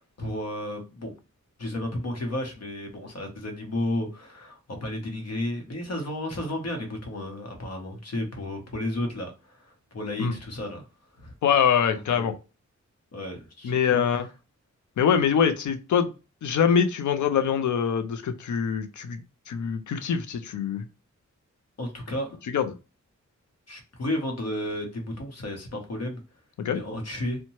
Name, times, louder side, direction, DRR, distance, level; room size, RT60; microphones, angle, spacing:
voice 1, 0.2-1.1 1.6-10.9 11.2-11.3 12.1-12.3 13.1-14.2 21.8-22.4 23.7-26.2 26.7-27.4, left 1 dB, 60° left, 0.9 m, -33 dB
voice 2, 11.4-12.3 13.6-14.3 15.0-16.1 16.4-19.2 19.5-20.9 22.5-22.7 26.6-26.8, left 7 dB, 80° left, 0.5 m, -24 dB
3.0 x 2.2 x 2.7 m
wide cardioid pair, 175°, 29 cm